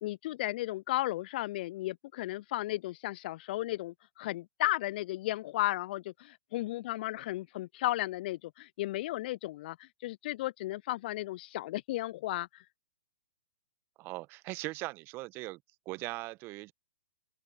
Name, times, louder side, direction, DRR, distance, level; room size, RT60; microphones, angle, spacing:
voice 1, 0.0-12.6, left 16 dB, 45° left, 0.4 m, -34 dB
voice 2, 14.0-15.6 15.9-16.7, right 21 dB, 30° right, 1.1 m, -39 dB
open air
figure-of-eight pair, 115°, 7 cm